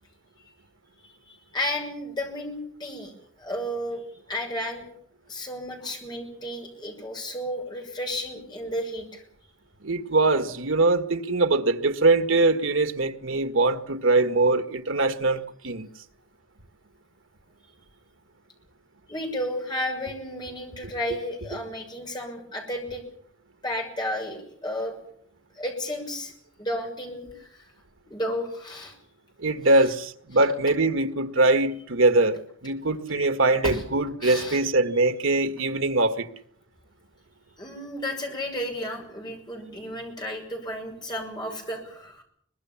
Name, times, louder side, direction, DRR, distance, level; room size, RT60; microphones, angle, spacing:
voice 1, 1.0-3.1 3.4-4.0 4.3-4.8 5.3-9.2 19.1-23.0 23.6-25.0 25.5-26.3 26.6-27.5 28.1-28.9 30.3-30.4 33.6-33.8 34.2-34.6 37.6-42.2, left 1 dB, 20° left, 6.4 m, -32 dB
voice 2, 9.8-15.9 29.4-36.3, right 2 dB, 85° right, 1.7 m, -22 dB
23.5 x 21.0 x 7.2 m
head